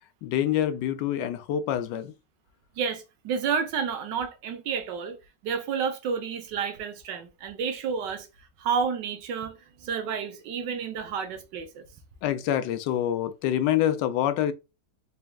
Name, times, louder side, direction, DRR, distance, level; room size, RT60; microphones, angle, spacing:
voice 1, 0.2-2.1 12.2-14.5, left 11 dB, 85° left, 1.2 m, -26 dB
voice 2, 2.8-5.2 5.4-8.3 8.6-11.8, right 6 dB, 85° right, 1.5 m, -30 dB
4.2 x 3.4 x 2.3 m
omnidirectional pair, 1.8 m